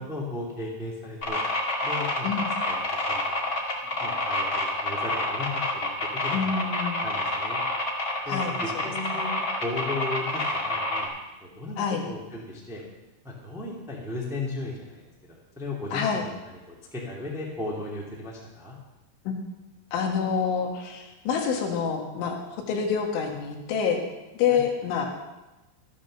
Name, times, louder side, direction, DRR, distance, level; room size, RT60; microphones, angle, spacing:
voice 1, 0.0-1.4 1.8-2.3 2.6-3.4 3.8-5.9 6.2-6.6 7.0-7.6 7.9-9.3 9.6-11.1 11.4-12.8 13.2-15.0 15.3-18.7 24.5-24.6, left 2 dB, ahead, -4 dB, 0.9 m, -36 dB
sound 1, 1.2-11.0, left 2 dB, 35° left, 1.4 m, -28 dB
voice 2, 6.3-7.0 8.3-8.8 11.8-12.0 15.9-16.2 19.3-19.4 19.9-22.4 22.7-24.0 24.4-25.1, left 6 dB, 75° left, 1 dB, 4.0 m, -27 dB
14.0 x 10.0 x 6.7 m, 1.1 s
omnidirectional pair, 5.6 m